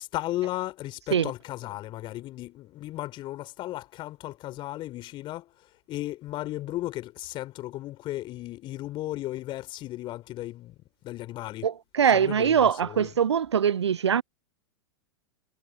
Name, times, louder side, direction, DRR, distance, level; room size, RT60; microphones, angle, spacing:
voice 1, 0.0-5.5 5.9-10.7 11.0-11.7 12.1-13.1, left 15 dB, 35° left, 3.9 m, -35 dB
voice 2, 11.6-14.2, right 8 dB, 80° right, 0.4 m, -23 dB
figure-of-eight pair, 100°, 14 cm